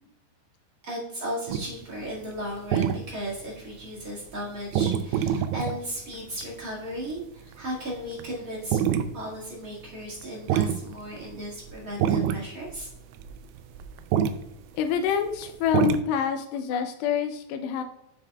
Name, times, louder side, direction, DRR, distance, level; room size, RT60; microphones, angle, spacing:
voice 1, 0.8-8.8 9.1-12.9, equal, 60° right, -6 dB, 0.8 m, -36 dB
sound 1, 1.5-2.3 2.7-4.0 4.3-4.5 4.7-5.8 6.4-6.5 6.9-7.0 7.6-8.4 8.7-9.1 9.4-9.5 9.8-9.9 10.2-10.3 10.4-14.4 15.4-16.0, right 9 dB, 85° right, 2.3 m, -26 dB
voice 2, 14.7-17.8, left 8 dB, 80° left, 6 dB, 2.6 m, -26 dB
7.6 x 7.6 x 2.3 m, 0.85 s
omnidirectional pair, 5.1 m